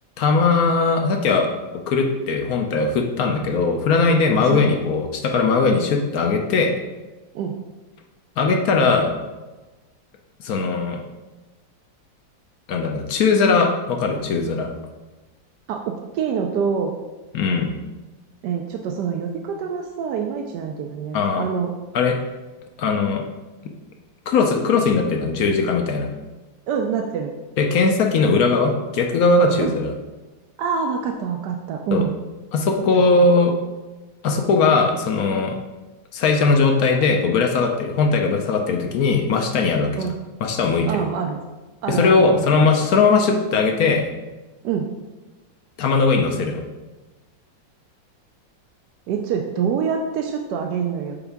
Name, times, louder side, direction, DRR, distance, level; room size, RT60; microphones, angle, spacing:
voice 1, 0.2-1.5 1.9-6.7 8.4-9.1 10.4-11.0 12.7-14.7 17.3-17.7 21.1-21.5 21.9-22.2 22.8-23.2 24.3-26.1 27.6-29.9 31.9-32.0 32.5-33.5 34.2-35.5 36.1-40.1 40.4-40.9 41.9-44.1 45.8-46.6, left 4 dB, 65° left, 3 dB, 1.0 m, -19 dB
voice 2, 4.4-4.8 7.3-7.5 15.7-16.9 18.4-21.7 26.7-27.3 29.6-29.7 30.6-32.1 32.9-33.0 40.0-40.1 40.9-41.4 41.8-42.5 44.6-44.9 49.1-51.2, right 6 dB, 75° right, 2 dB, 1.1 m, -26 dB
7.1 x 4.8 x 3.5 m, 1.2 s
omnidirectional pair, 2.0 m